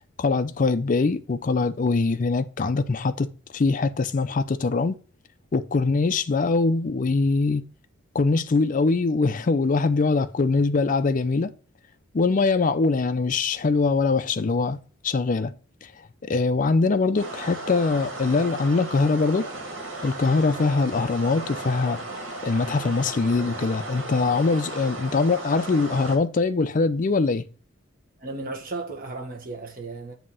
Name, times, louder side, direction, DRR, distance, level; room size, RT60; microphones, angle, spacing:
voice 1, 0.0-5.0 5.5-7.7 8.1-11.5 12.1-14.8 15.0-15.5 15.8-15.9 16.2-19.5 20.0-22.0 22.4-27.4, left 3 dB, 40° left, 0.4 m, -23 dB
sound 1, 17.2-26.2, right 2 dB, 75° right, 2.0 m, -35 dB
voice 2, 28.2-30.1, right 3 dB, 45° right, 1.4 m, -35 dB
7.5 x 2.9 x 5.5 m
head